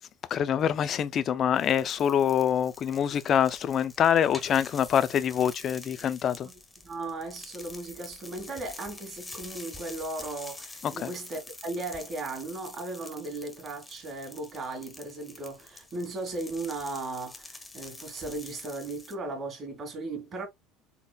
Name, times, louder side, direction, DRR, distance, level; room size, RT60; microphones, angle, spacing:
voice 1, 0.3-6.5 10.8-11.1, left 9 dB, 35° left, 0.5 m, -25 dB
sound 1, 1.5-19.1, left 2 dB, 10° left, 0.8 m, -47 dB
voice 2, 6.8-20.5, right 2 dB, 35° right, 2.2 m, -36 dB
4.3 x 4.1 x 2.3 m
cardioid pair, 150°, 0 cm